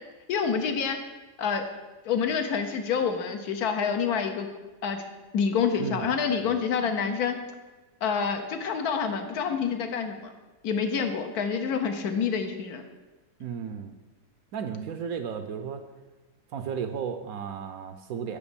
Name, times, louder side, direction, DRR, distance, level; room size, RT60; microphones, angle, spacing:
voice 1, 0.3-1.0 1.4-1.6 2.0-4.5 4.8-5.0 5.3-7.4 8.0-10.3 10.6-12.8, left 6 dB, 70° left, 6 dB, 1.2 m, -27 dB
voice 2, 5.8-6.1 6.4-6.6 13.4-13.9 14.5-15.8 16.5-18.4, right 7 dB, 70° right, 8 dB, 0.9 m, -34 dB
7.1 x 5.1 x 6.9 m, 1.2 s
omnidirectional pair, 1.8 m